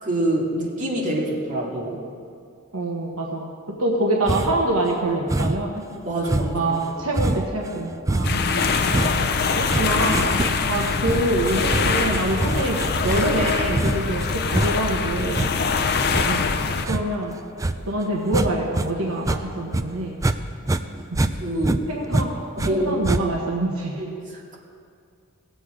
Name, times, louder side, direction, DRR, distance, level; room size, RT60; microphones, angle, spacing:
voice 1, 0.0-2.0 5.9-6.7 15.6-15.7 21.4-21.8 22.6-23.0 24.0-24.1, right 1 dB, 35° right, -4 dB, 2.3 m, -26 dB
voice 2, 2.7-3.5 3.8-5.8 6.5-8.5 9.6-10.3 10.7-15.5 16.2-16.5 16.9-17.4 17.9-20.1 21.1-21.2 21.9-22.3 22.6-24.0, right 1 dB, 70° right, -1 dB, 1.2 m, -25 dB
sound 1, 4.3-4.7 5.3-5.8 6.2-18.9 19.2-20.4 20.6-22.7 23.0-23.5, right 2 dB, 15° right, 0.4 m, -26 dB
sound 2, 8.2-16.9, left 5 dB, 50° left, 0.6 m, -23 dB
sound 3, 9.0-16.9, left 2 dB, 70° left, 1.1 m, -39 dB
18.5 x 7.9 x 4.9 m, 2.3 s
head